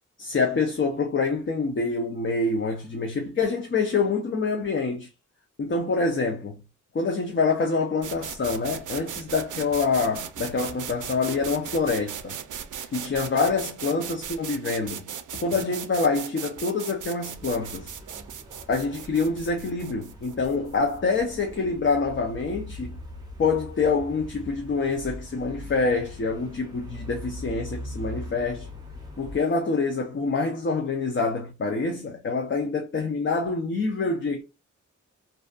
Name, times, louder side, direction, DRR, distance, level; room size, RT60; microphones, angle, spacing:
voice 1, 0.2-5.1 5.6-6.6 6.9-12.3 12.9-15.1 15.4-18.0 18.7-23.0 23.4-28.7 29.2-34.4, left 4 dB, 40° left, 0.5 m, -26 dB
sound 1, 8.0-21.7, right 8 dB, 85° right, 0.5 m, -38 dB
sound 2, 17.2-29.4, equal, 15° right, 0.5 m, -41 dB
2.6 x 2.2 x 2.4 m
wide cardioid pair, 145°, 30 cm